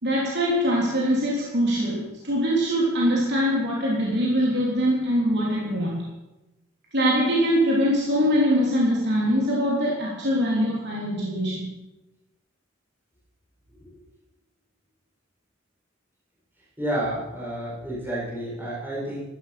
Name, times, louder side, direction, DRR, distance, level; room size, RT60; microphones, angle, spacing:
voice 1, 0.0-6.0 6.9-11.7, equal, 55° right, -4 dB, 3.5 m, -23 dB
voice 2, 16.8-19.2, right 1 dB, 10° right, -8 dB, 6.7 m, -30 dB
16.5 x 13.0 x 6.0 m, 0.98 s
head